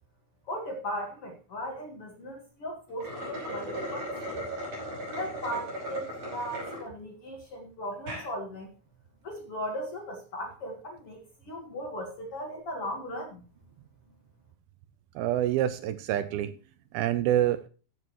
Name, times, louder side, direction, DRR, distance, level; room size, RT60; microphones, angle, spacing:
voice 1, 0.5-4.5 5.1-8.7 9.2-13.4, equal, 50° left, 2 dB, 2.0 m, -37 dB
sound 1, 2.9-6.8 7.3-7.4 7.9-8.3, right 1 dB, 35° right, 6.5 m, -36 dB
voice 2, 15.2-16.5 16.9-17.6, right 12 dB, 80° right, 12 dB, 2.3 m, -26 dB
14.5 x 8.3 x 3.1 m, 0.35 s
omnidirectional pair, 4.7 m